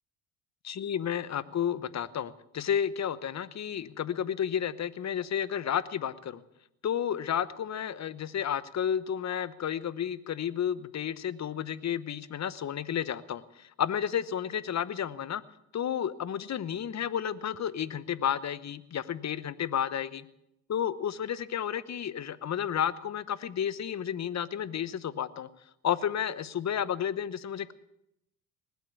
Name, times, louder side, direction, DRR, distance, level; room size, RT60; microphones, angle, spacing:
voice 1, 0.6-6.4 6.8-15.4 15.7-20.2 20.7-25.5 25.8-27.7, left 9 dB, 35° left, 17 dB, 1.0 m, -32 dB
19.5 x 8.3 x 8.3 m, 0.82 s
hypercardioid pair, 70°, 47 cm